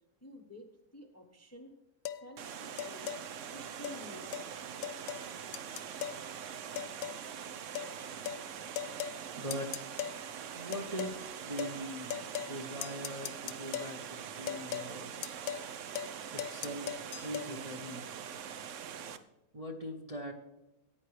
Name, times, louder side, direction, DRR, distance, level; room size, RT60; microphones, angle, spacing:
voice 1, 0.2-0.7 0.9-1.7 2.2-3.1 3.5-4.9, left 1 dB, 15° left, 4 dB, 0.7 m, -51 dB
sound 1, 2.0-2.2 2.8-3.2 3.8-4.0 4.3-4.5 4.8-5.3 5.5-6.2 6.8-7.2 7.7-7.9 8.3-8.4 8.8-9.2 9.5-10.2 10.7-11.2 11.6-11.8 12.1-12.6 12.8-13.9 14.5-14.9 15.2-15.7 15.9-16.1 16.4-17.5, left 11 dB, 70° left, 0.9 m, -38 dB
Water, 2.4-19.2, right 8 dB, 60° right, 0.9 m, -43 dB
voice 2, 9.3-9.7 10.5-15.2 16.3-16.9 17.2-18.2 19.5-20.3, equal, 30° right, 1 dB, 0.9 m, -41 dB
14.0 x 9.4 x 3.2 m, 0.97 s
omnidirectional pair, 1.7 m